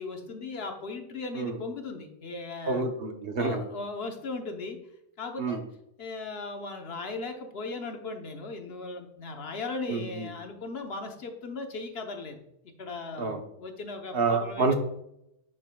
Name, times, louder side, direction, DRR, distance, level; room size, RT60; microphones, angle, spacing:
voice 1, 0.0-2.8 3.4-4.8 5.2-5.6 6.0-12.4 12.8-14.8, left 3 dB, 60° left, 4 dB, 1.1 m, -37 dB
voice 2, 2.7-3.6 5.4-5.6 9.9-10.3 13.2-13.4 14.1-14.7, right 3 dB, 55° right, 5 dB, 1.0 m, -28 dB
10.5 x 5.1 x 2.2 m, 0.78 s
omnidirectional pair, 1.2 m